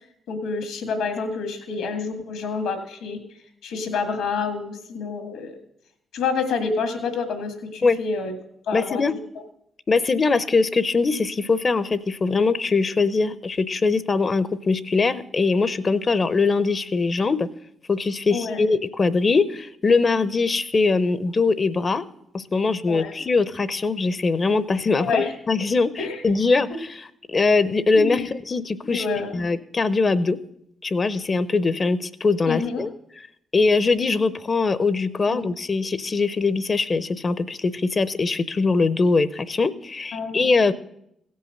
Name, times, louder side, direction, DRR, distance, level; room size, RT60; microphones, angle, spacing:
voice 1, 0.3-3.2 3.6-5.5 6.1-8.3 8.7-9.0 18.3-18.6 22.9-23.2 25.0-25.3 26.0-26.2 27.9-28.3 28.8-29.3 32.5-32.9 35.3-35.4 40.1-40.4, left 4 dB, 80° left, 6 dB, 1.8 m, -28 dB
voice 2, 8.7-9.1 9.9-17.5 17.9-22.0 22.3-26.9 27.3-29.0 29.3-30.4 30.8-32.9 33.5-40.7, left 4 dB, 40° left, 16 dB, 0.7 m, -22 dB
16.5 x 5.6 x 6.5 m, 0.75 s
hypercardioid pair, 50°, 0 cm